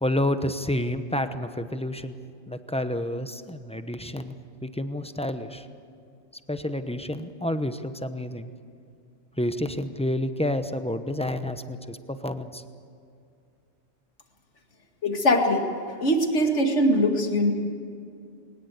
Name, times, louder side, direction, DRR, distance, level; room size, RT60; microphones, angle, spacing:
voice 1, 0.0-2.1 2.5-4.3 4.6-5.7 6.5-8.5 9.4-12.6, left 1 dB, 5° left, 9 dB, 0.8 m, -29 dB
voice 2, 15.0-15.7 16.0-17.5, equal, 70° left, 3 dB, 2.4 m, -21 dB
21.5 x 19.5 x 8.2 m, 2.5 s
omnidirectional pair, 1.3 m